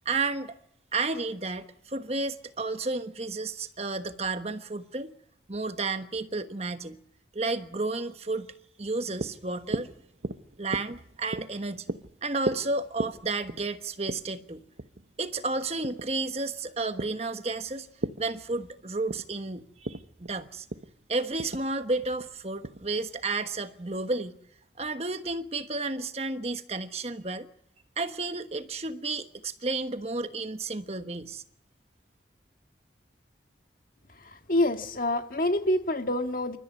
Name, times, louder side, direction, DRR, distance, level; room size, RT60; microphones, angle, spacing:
voice 1, 0.0-0.5 0.9-5.1 5.5-7.0 7.3-8.5 8.8-9.9 10.6-11.9 12.2-14.6 15.2-17.9 18.2-20.7 21.1-24.4 24.8-27.5 28.0-31.4, right 3 dB, 35° right, 1.3 m, -32 dB
sound 1, 8.8-23.4, right 2 dB, 65° right, 1.1 m, -39 dB
voice 2, 34.2-36.6, left 1 dB, 50° left, 2.0 m, -27 dB
28.5 x 14.0 x 9.8 m
head